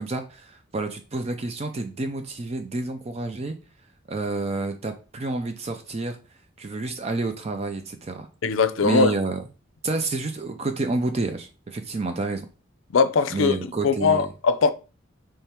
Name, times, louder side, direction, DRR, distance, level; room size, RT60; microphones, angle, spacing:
voice 1, 0.0-3.5 4.1-6.2 6.6-8.3 8.8-9.4 9.8-12.5 13.3-14.3, right 3 dB, 30° right, 0.4 m, -29 dB
voice 2, 8.4-9.1 12.9-13.6 13.8-14.7, left 4 dB, 75° left, 0.5 m, -20 dB
3.5 x 3.2 x 4.3 m
head